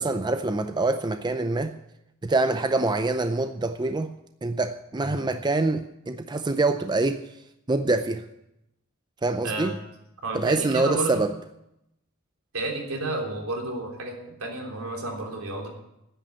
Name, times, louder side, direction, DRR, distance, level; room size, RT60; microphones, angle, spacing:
voice 1, 0.0-1.8 2.2-4.1 4.4-7.3 7.7-8.3 9.2-9.8 10.3-11.3, right 2 dB, 20° right, 0.5 m, -25 dB
voice 2, 10.2-11.2 12.5-15.7, right 2 dB, 80° right, 3.4 m, -31 dB
10.0 x 9.1 x 10.0 m
head